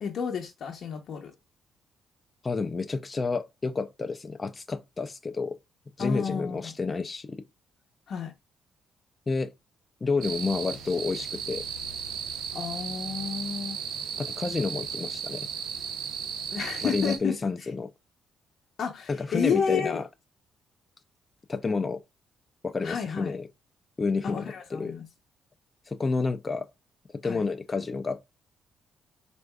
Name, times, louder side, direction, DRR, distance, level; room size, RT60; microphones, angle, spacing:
voice 1, 0.0-1.3 6.0-6.7 8.1-8.3 12.5-13.8 16.5-17.3 17.6-17.7 18.8-20.0 22.8-23.4 24.2-25.1 27.2-27.4, left 7 dB, 65° left, 0.7 m, -31 dB
voice 2, 2.4-5.6 6.0-7.4 9.3-9.5 10.0-11.6 14.2-15.5 16.8-17.9 19.1-20.0 21.5-22.0 22.6-23.5 24.0-25.0 25.9-26.7 27.2-28.3, left 4 dB, 30° left, 0.4 m, -30 dB
sound 1, 10.2-17.2, right 7 dB, 85° right, 0.6 m, -35 dB
4.6 x 2.5 x 2.2 m
cardioid pair, 90°, 0 cm